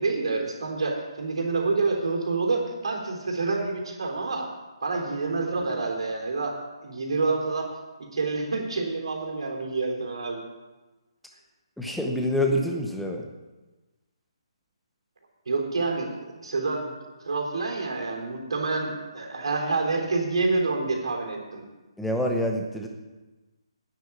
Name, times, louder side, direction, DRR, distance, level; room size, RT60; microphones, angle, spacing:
voice 1, 0.0-4.5 4.8-6.5 6.8-7.7 8.1-10.4 15.4-16.1 16.4-16.9 17.2-21.6, right 3 dB, 75° right, 1 dB, 3.5 m, -27 dB
voice 2, 11.8-13.2 22.0-22.9, left 1 dB, ahead, 1 dB, 0.8 m, -26 dB
9.6 x 8.5 x 8.4 m, 1.2 s
hypercardioid pair, 175°, 3 cm